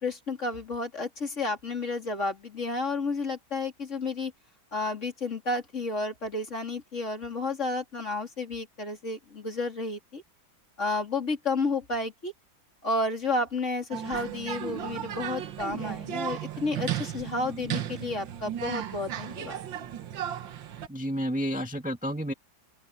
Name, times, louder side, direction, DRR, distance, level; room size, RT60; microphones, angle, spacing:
voice 1, 0.0-4.3 4.7-10.2 10.8-12.3 12.8-19.6, left 3 dB, 35° left, 3.4 m, -31 dB
sound 1, 13.9-20.9, right 10 dB, 70° right, 1.9 m, -35 dB
voice 2, 20.9-22.3, equal, 5° right, 1.7 m, -30 dB
open air
omnidirectional pair, 2.2 m